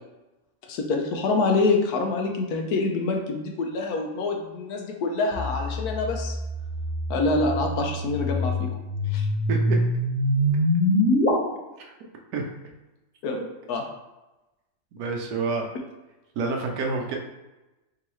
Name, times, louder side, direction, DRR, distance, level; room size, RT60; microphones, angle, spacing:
voice 1, 0.7-6.4 7.1-8.7 9.1-9.3 13.2-13.4 13.7-13.8, left 3 dB, 75° left, 3 dB, 1.1 m, -26 dB
sound 1, 5.3-11.3, left 1 dB, 10° left, 0.6 m, -25 dB
voice 2, 9.5-9.8 12.3-12.4 14.9-15.6 16.4-17.2, right 4 dB, 70° right, 1 dB, 1.1 m, -27 dB
4.6 x 3.0 x 3.1 m, 1.0 s
omnidirectional pair, 1.7 m